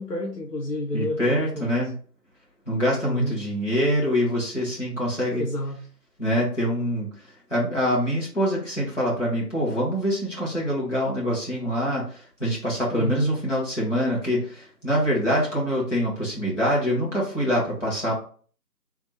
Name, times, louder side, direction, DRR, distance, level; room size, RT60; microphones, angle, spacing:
voice 1, 0.0-1.7 3.0-3.4 5.3-5.8 12.9-13.3, left 1 dB, 70° left, 0 dB, 0.8 m, -29 dB
voice 2, 0.9-1.9 2.7-5.4 6.2-7.1 7.5-18.1, equal, 45° left, -5 dB, 1.8 m, -25 dB
3.4 x 2.4 x 3.4 m, 0.43 s
figure-of-eight pair, 175°, 49 cm